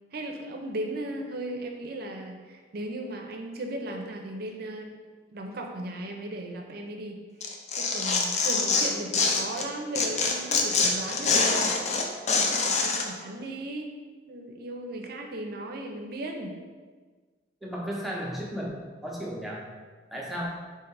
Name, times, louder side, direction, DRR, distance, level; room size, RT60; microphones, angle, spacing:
voice 1, 0.1-5.0 5.3-7.2 7.7-11.7 12.3-13.9 14.3-16.5, right 1 dB, 55° right, 3 dB, 0.5 m, -36 dB
Tearing, 7.4-9.7 10.0-13.1, left 4 dB, 40° left, 0.4 m, -25 dB
voice 2, 17.6-18.7 19.0-19.7 20.1-20.5, equal, ahead, -4 dB, 0.6 m, -34 dB
3.7 x 2.7 x 4.6 m, 1.5 s
head